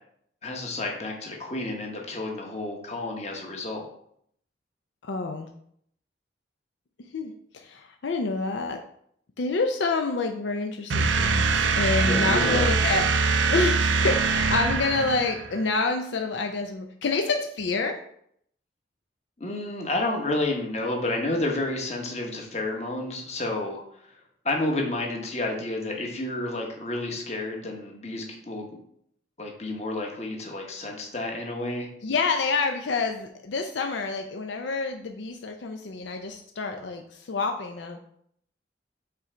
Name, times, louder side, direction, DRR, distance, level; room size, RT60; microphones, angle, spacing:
voice 1, 0.4-3.9 12.0-12.7 19.4-24.2 24.4-28.8 29.4-31.9, left 2 dB, 35° left, 0 dB, 1.1 m, -30 dB
voice 2, 5.0-5.5 7.1-8.8 9.4-13.0 13.5-18.0 32.0-38.0, left 3 dB, 80° left, 4 dB, 0.5 m, -28 dB
sound 1, 10.9-15.6, right 4 dB, 90° right, 0.6 m, -23 dB
5.6 x 3.8 x 4.4 m, 0.68 s
head